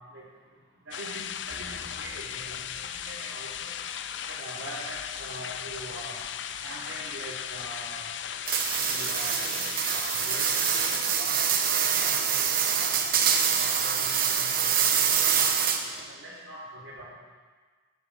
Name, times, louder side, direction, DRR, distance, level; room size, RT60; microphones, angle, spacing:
sound 1, 0.9-11.1, left 9 dB, 65° left, 0.5 m, -37 dB
voice 1, 0.9-3.7 4.3-6.1 6.6-8.1 8.8-9.4 9.9-10.5 10.8-11.4 11.9-13.0 13.5-15.0 15.3-15.6 16.2-17.1, right 1 dB, 90° right, -10 dB, 2.9 m, -43 dB
sound 2, 1.5-4.2, equal, 65° right, 3.3 m, -52 dB
sound 3, 8.5-16.0, right 7 dB, 45° right, 1.1 m, -25 dB
11.5 x 9.6 x 6.7 m, 1.5 s
head